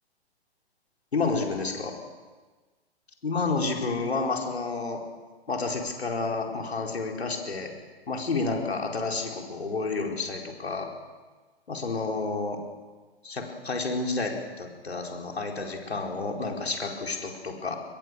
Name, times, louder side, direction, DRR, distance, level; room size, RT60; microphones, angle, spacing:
voice 1, 1.1-1.9 3.2-5.0 5.5-7.7 8.1-10.9 11.7-12.6 13.2-17.8, left 3 dB, 80° left, 1 dB, 4.5 m, -30 dB
26.0 x 21.5 x 6.6 m, 1.3 s
figure-of-eight pair, 120°, 31 cm